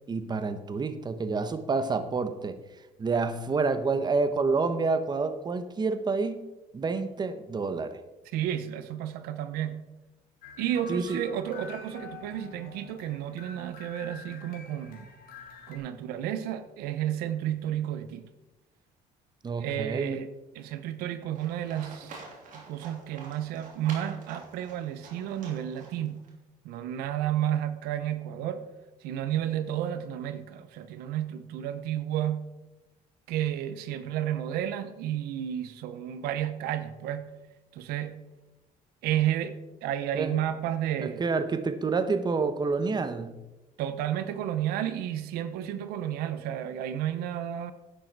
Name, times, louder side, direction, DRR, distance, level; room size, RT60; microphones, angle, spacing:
voice 1, 0.1-2.6 3.0-6.5 6.7-8.0 10.9-11.2 19.4-20.2 40.1-40.3 41.0-43.4, right 4 dB, 30° right, 11 dB, 1.0 m, -28 dB
voice 2, 8.3-9.8 10.6-15.1 15.7-18.2 19.6-20.3 20.5-22.1 22.5-26.2 26.6-28.6 29.0-32.4 33.3-37.3 37.7-38.1 39.0-41.2 43.8-47.7, right 11 dB, 90° right, 11 dB, 0.8 m, -31 dB
sound 1, 10.4-15.8, left 4 dB, 75° left, 2.3 m, -47 dB
Livestock farm animals working animals, 21.3-26.3, right 3 dB, 60° right, 3.4 m, -47 dB
11.5 x 8.7 x 4.7 m, 1.0 s
cardioid pair, 110°, 15 cm